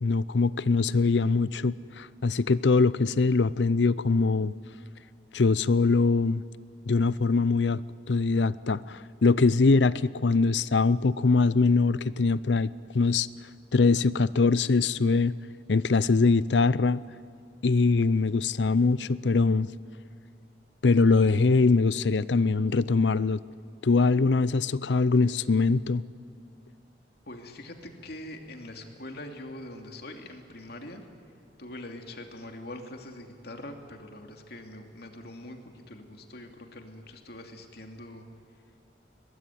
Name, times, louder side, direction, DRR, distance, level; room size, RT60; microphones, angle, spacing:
voice 1, 0.0-4.5 5.3-6.4 6.9-7.8 8.1-13.3 13.7-15.3 15.7-17.0 17.6-19.7 20.8-23.4 23.8-26.0, left 4 dB, 80° left, 18 dB, 0.6 m, -23 dB
voice 2, 27.3-31.0 31.6-38.2, left 1 dB, 60° left, 4 dB, 2.7 m, -43 dB
22.5 x 20.5 x 9.3 m, 2.5 s
head